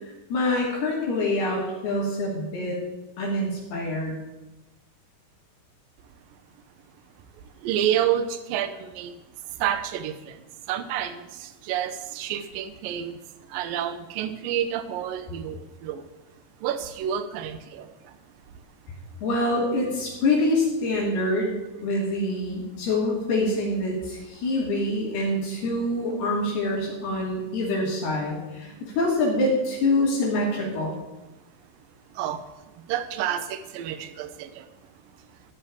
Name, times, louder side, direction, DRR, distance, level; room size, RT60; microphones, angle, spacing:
voice 1, 0.0-2.8 3.2-4.1 19.2-31.0, left 2 dB, 70° left, -4 dB, 4.8 m, -25 dB
voice 2, 7.6-9.2 9.6-13.2 13.5-16.0 16.6-18.2 32.1-32.4 32.8-34.7, right 10 dB, 70° right, 10 dB, 2.3 m, -29 dB
15.5 x 5.6 x 8.6 m, 1.0 s
omnidirectional pair, 4.8 m